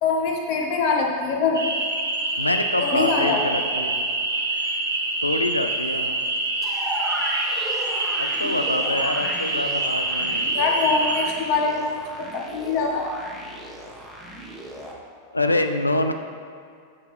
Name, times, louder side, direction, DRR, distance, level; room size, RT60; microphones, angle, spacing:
voice 1, 0.0-1.6 2.8-3.7 10.5-12.0 12.3-13.1, left 4 dB, 45° left, 0 dB, 1.2 m, -23 dB
sound 1, 1.5-11.2, right 2 dB, 75° right, 1.1 m, -26 dB
voice 2, 2.4-4.1 5.2-6.2 8.2-10.5 15.3-16.1, left 2 dB, 85° left, 7 dB, 0.4 m, -26 dB
sound 2, 6.6-14.9, equal, 5° right, 1.2 m, -35 dB
8.0 x 7.4 x 3.2 m, 2.3 s
figure-of-eight pair, 90°, 0 cm